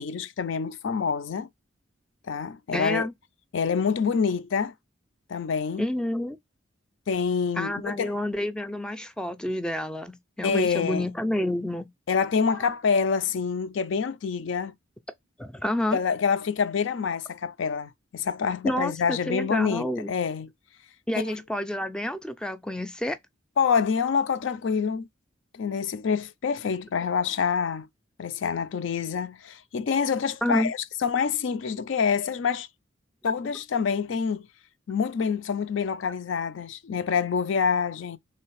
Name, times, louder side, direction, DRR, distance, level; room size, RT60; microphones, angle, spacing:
voice 1, 0.0-1.5 2.3-3.1 3.5-4.7 5.3-5.9 7.1-8.1 10.4-11.1 12.1-14.7 15.9-20.5 23.6-25.1 25.5-27.9 28.2-32.7 33.2-34.4 34.9-38.2, left 6 dB, 75° left, 0.4 m, -26 dB
voice 2, 2.7-3.1 5.8-6.4 7.6-11.9 12.5-12.7 15.4-16.0 18.6-20.1 21.1-23.2 30.4-30.7, left 1 dB, 5° left, 0.3 m, -29 dB
3.3 x 3.2 x 4.6 m
head